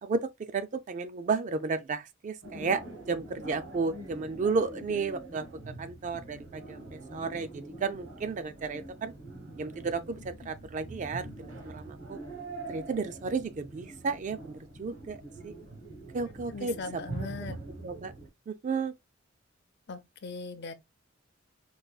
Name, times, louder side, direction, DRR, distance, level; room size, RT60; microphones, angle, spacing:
voice 1, 0.0-2.8 3.1-5.5 5.8-9.1 9.5-12.2 12.7-15.5 16.1-17.0 17.4-17.5 17.8-18.1 18.5-18.9, right 4 dB, 40° right, 0.3 m, -33 dB
sound 1, 2.4-18.3, right 2 dB, 70° right, 1.2 m, -44 dB
voice 2, 16.5-17.6 19.9-20.7, left 4 dB, 60° left, 0.6 m, -39 dB
4.7 x 2.3 x 2.3 m
head